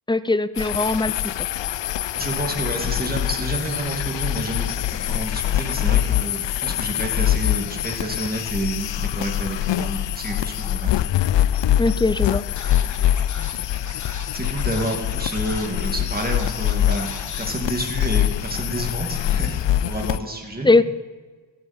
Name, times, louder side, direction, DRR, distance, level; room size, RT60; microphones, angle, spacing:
voice 1, 0.1-1.1 11.8-12.4 20.6-20.8, left 2 dB, 10° left, 15 dB, 0.5 m, -19 dB
sound 1, 0.6-20.2, left 12 dB, 70° left, 0.5 m, -24 dB
voice 2, 2.1-10.9 14.3-20.7, right 1 dB, 20° right, 1 dB, 2.5 m, -29 dB
Scratching (performance technique), 12.2-12.3 12.6-15.9 16.2-17.4, left 3 dB, 40° left, 1.5 m, -38 dB
15.5 x 13.5 x 4.5 m, 1.4 s
wide cardioid pair, 75°, 46 cm